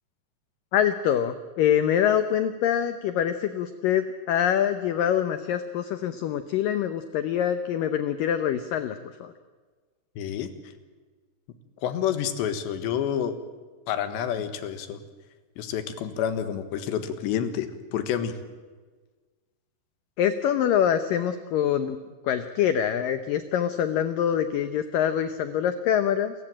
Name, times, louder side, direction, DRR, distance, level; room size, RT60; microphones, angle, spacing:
voice 1, 0.7-9.3 20.2-22.0 22.2-26.3, left 9 dB, 90° left, 10 dB, 1.9 m, -25 dB
voice 2, 10.2-10.5 11.8-13.4 13.9-15.0 15.6-18.4, left 9 dB, 75° left, 10 dB, 3.6 m, -29 dB
28.0 x 15.0 x 8.9 m, 1.4 s
omnidirectional pair, 5.2 m